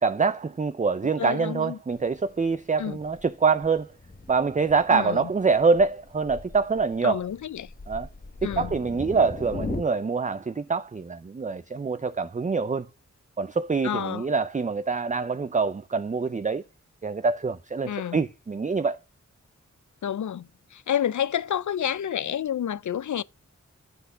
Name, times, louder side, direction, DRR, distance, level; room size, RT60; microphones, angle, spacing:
voice 1, 0.0-3.9 4.3-7.2 7.9-8.1 8.4-12.9 13.4-16.6 17.0-19.0, right 4 dB, 25° right, 0.5 m, -25 dB
voice 2, 1.2-1.8 2.8-3.0 4.9-5.2 7.0-7.7 8.4-8.7 13.8-14.2 17.8-18.2 20.0-20.5 20.7-23.2, left 9 dB, 75° left, 0.4 m, -29 dB
Thunder, 1.9-9.8, left 3 dB, 30° left, 0.9 m, -39 dB
8.1 x 6.0 x 5.5 m
wide cardioid pair, 70°, 30 cm